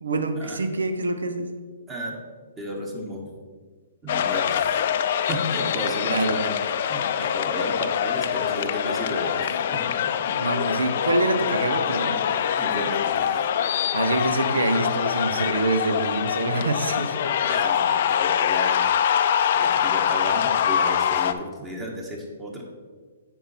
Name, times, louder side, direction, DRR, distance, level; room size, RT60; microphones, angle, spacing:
voice 1, 0.0-1.6 6.0-6.4 10.3-12.2 13.9-17.2, right 2 dB, 90° right, 7 dB, 0.8 m, -25 dB
voice 2, 1.9-2.2 2.6-3.3 4.0-4.8 5.3-6.6 6.9-10.1 12.6-13.4 17.4-18.9 19.5-22.6, equal, 15° right, 0 dB, 1.4 m, -33 dB
sound 1, 4.1-21.3, left 9 dB, 55° left, 0.4 m, -24 dB
9.9 x 3.9 x 4.2 m, 1.5 s
hypercardioid pair, 135°, 0 cm